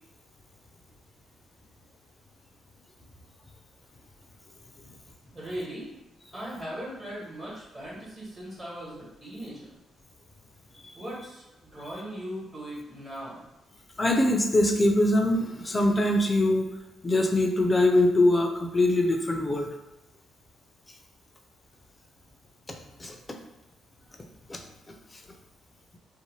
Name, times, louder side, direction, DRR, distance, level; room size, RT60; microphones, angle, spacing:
voice 1, 5.3-5.9 6.3-9.7 10.9-11.4 11.7-13.4, equal, 30° right, -7 dB, 1.3 m, -38 dB
voice 2, 14.0-16.7 17.0-19.7 23.0-23.2 24.5-24.6, left 1 dB, 25° left, 3 dB, 0.5 m, -23 dB
2.6 x 2.2 x 3.1 m, 0.99 s
cardioid pair, 75°, 0 cm